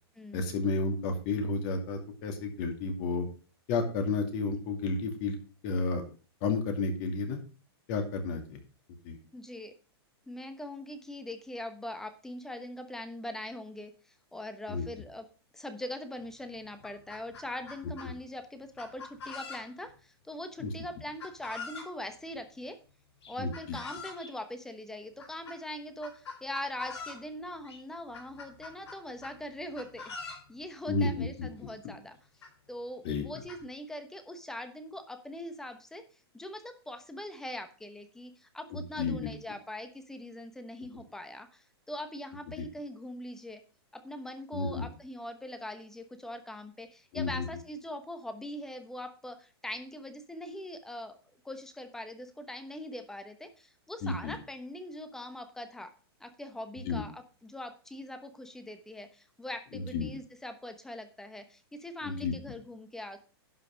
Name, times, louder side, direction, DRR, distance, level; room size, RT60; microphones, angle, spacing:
voice 1, 0.3-3.3 3.7-5.4 5.6-6.0 6.4-7.4 7.9-8.6 9.0-9.2 14.7-14.8 18.0-18.1 20.6-20.7 23.4-23.8 30.9-31.5 33.0-33.3 38.7-39.3 42.6-42.7 44.5-44.9 47.1-47.5 54.0-54.3 56.8-57.0 59.7-60.1 62.0-62.3, left 3 dB, 40° left, 5 dB, 2.5 m, -31 dB
voice 2, 9.3-9.7 10.3-13.9 14.3-15.2 15.5-22.8 23.3-32.2 32.7-36.0 36.3-43.6 43.9-51.2 51.4-55.9 56.2-63.2, left 1 dB, 5° left, 9 dB, 1.0 m, -42 dB
Chicken rooster, 16.2-16.3 16.6-18.1 18.8-19.9 21.2-21.9 23.2-24.3 25.2-25.6 26.0-27.2 27.6-27.8 28.1-29.4 29.7-30.5 31.4-31.5 31.7-31.8 32.4-32.5 33.1-33.6, left 4 dB, 85° left, 4.6 m, -43 dB
11.0 x 5.8 x 5.1 m, 0.37 s
hypercardioid pair, 155°, 14 cm